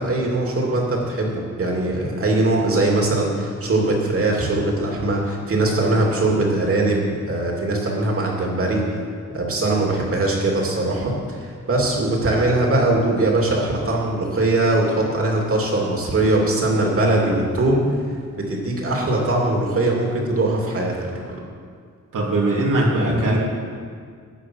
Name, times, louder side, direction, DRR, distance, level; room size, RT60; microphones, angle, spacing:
voice 1, 0.0-8.8 9.3-18.0 18.3-21.3 23.0-23.2, right 2 dB, 45° right, -1 dB, 2.9 m, -21 dB
voice 2, 22.1-23.4, right 2 dB, 85° right, -5 dB, 3.3 m, -20 dB
16.5 x 9.2 x 6.4 m, 2.1 s
wide cardioid pair, 160°, 31 cm